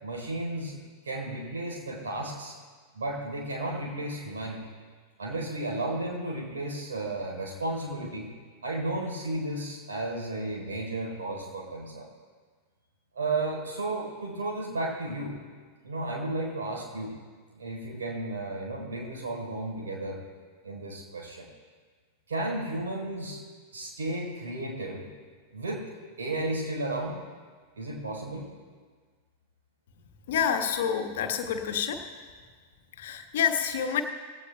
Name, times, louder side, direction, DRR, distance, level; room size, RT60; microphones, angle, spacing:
voice 1, 0.0-0.8 1.0-2.6 2.9-4.7 5.2-8.3 8.6-12.1 13.1-15.4 15.8-17.2 17.5-20.2 20.6-21.5 22.3-23.4 23.7-25.1 25.5-27.2 27.8-28.5, right 2 dB, 70° right, -1 dB, 3.9 m, -33 dB
voice 2, 30.3-32.1 33.0-34.0, left 8 dB, 60° left, 5 dB, 1.2 m, -28 dB
19.0 x 16.5 x 2.3 m, 1.6 s
figure-of-eight pair, 90°, 0 cm